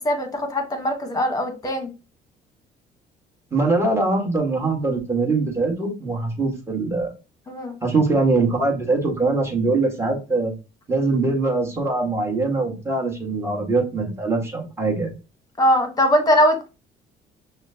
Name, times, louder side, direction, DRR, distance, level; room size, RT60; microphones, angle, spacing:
voice 1, 0.0-1.9 7.5-7.7 15.6-16.7, equal, 20° left, 1.2 m, -21 dB
voice 2, 3.5-7.1 7.8-10.5 10.9-15.1, right 3 dB, 15° right, 1.7 m, -22 dB
5.9 x 2.2 x 2.8 m
cardioid pair, 110°, 17 cm